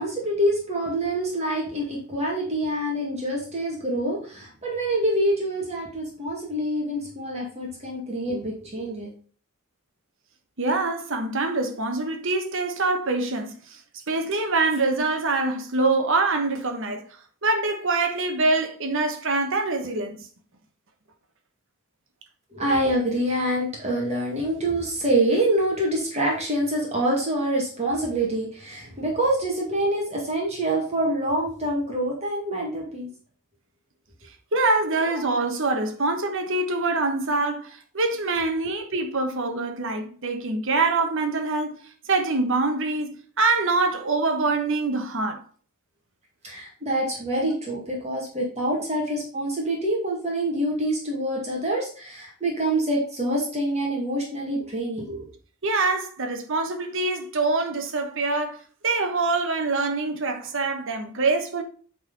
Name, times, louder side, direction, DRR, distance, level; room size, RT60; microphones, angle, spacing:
voice 1, 0.0-9.1 22.5-33.1 46.4-55.3, right 1 dB, 30° right, 2.0 m, -26 dB
voice 2, 10.6-13.8 14.1-17.1 17.4-20.2 34.5-45.4 55.6-61.6, right 3 dB, 60° right, 1.2 m, -25 dB
8.8 x 4.1 x 3.9 m
head